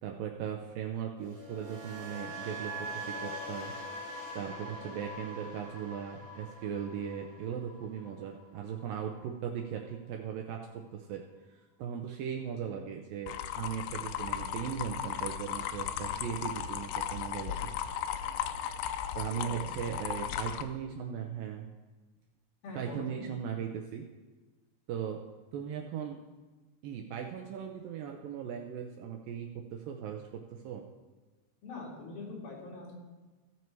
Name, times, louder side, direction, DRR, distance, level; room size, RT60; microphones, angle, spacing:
voice 1, 0.0-3.7 4.4-11.2 11.5-17.7 19.2-21.7 22.8-24.0 24.9-25.2 25.5-26.2 26.8-30.8, right 8 dB, 80° right, 2 dB, 2.1 m, -38 dB
sound 1, 1.2-9.3 9.6-9.9, right 1 dB, 50° right, 3.4 m, -43 dB
sound 2, 13.3-20.6, left 9 dB, 90° left, 1.9 m, -36 dB
voice 2, 19.3-19.6 22.6-23.3 31.6-32.9, left 3 dB, 65° left, -3 dB, 4.0 m, -43 dB
16.5 x 6.2 x 4.5 m, 1.3 s
omnidirectional pair, 4.6 m